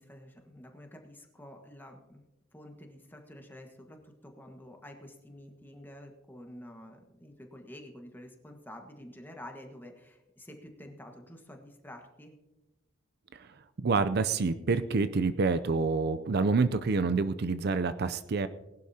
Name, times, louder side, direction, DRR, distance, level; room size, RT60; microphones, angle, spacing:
voice 1, 0.0-2.2 2.5-12.3, left 1 dB, 10° left, 3 dB, 1.4 m, -49 dB
voice 2, 13.8-18.5, right 4 dB, 55° right, 13 dB, 0.5 m, -27 dB
19.5 x 11.5 x 2.8 m, 1.0 s
head